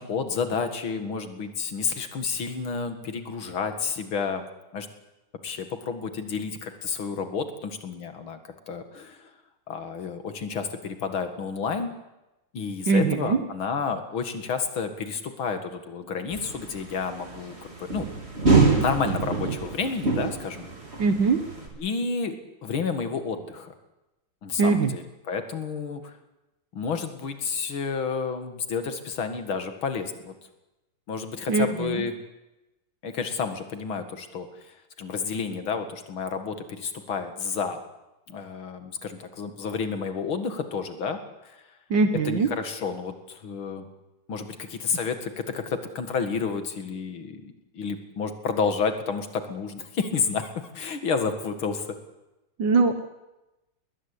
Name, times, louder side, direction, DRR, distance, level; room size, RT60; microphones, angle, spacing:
voice 1, 0.0-4.5 4.7-4.9 5.4-8.4 8.7-9.3 9.7-11.9 12.5-18.1 18.7-20.7 21.8-22.4 22.6-23.7 24.4-26.1 26.7-30.3 31.1-32.1 33.0-37.8 38.3-41.2 41.4-41.6 42.3-43.9 44.3-50.5 50.7-51.9, left 5 dB, 75° left, 7 dB, 2.8 m, -30 dB
voice 2, 12.9-13.5 21.0-21.4 24.6-25.0 31.5-32.1 41.9-42.5 52.6-53.0, right 4 dB, 60° right, 7 dB, 1.9 m, -22 dB
sound 1, 16.3-21.7, right 4 dB, 30° right, 3.8 m, -26 dB
20.5 x 20.0 x 8.5 m, 0.99 s
omnidirectional pair, 2.3 m